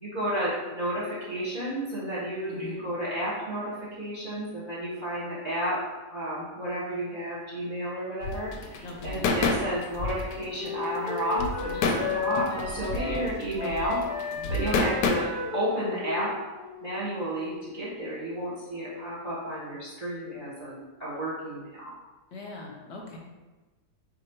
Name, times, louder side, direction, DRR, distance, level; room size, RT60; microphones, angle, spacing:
voice 1, 0.0-5.8 6.1-14.0 14.5-16.3 16.8-21.9, right 1 dB, 40° right, -8 dB, 0.9 m, -32 dB
voice 2, 2.5-2.8 8.8-9.3 14.4-14.5 22.3-23.2, left 2 dB, 50° left, -1 dB, 0.9 m, -40 dB
sound 1, 8.2-15.1, left 3 dB, 75° left, 1.0 m, -29 dB
Wind instrument woodwind instrument, 10.1-17.6, left 4 dB, 20° left, 0.7 m, -35 dB
4.1 x 2.6 x 4.3 m, 1.2 s
omnidirectional pair, 1.7 m